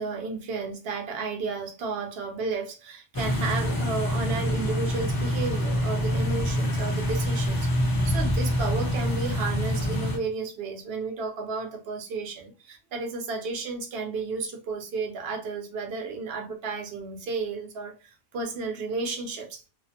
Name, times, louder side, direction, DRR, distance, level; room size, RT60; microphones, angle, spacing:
voice 1, 0.0-17.9 18.3-19.6, right 4 dB, 70° right, 0.9 m, -33 dB
sound 1, 3.1-10.2, equal, 30° left, 0.4 m, -26 dB
2.4 x 2.0 x 2.7 m
omnidirectional pair, 1.1 m